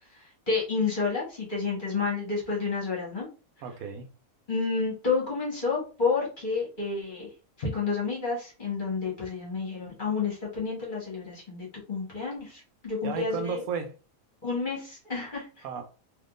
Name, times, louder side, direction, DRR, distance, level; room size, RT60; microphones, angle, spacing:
voice 1, 0.1-3.3 4.5-7.3 7.6-13.6 14.4-15.6, left 4 dB, 35° left, 1.4 m, -30 dB
voice 2, 3.6-4.1 13.0-13.9 15.6-15.8, right 6 dB, 85° right, 1.1 m, -33 dB
3.6 x 2.9 x 2.4 m
omnidirectional pair, 1.5 m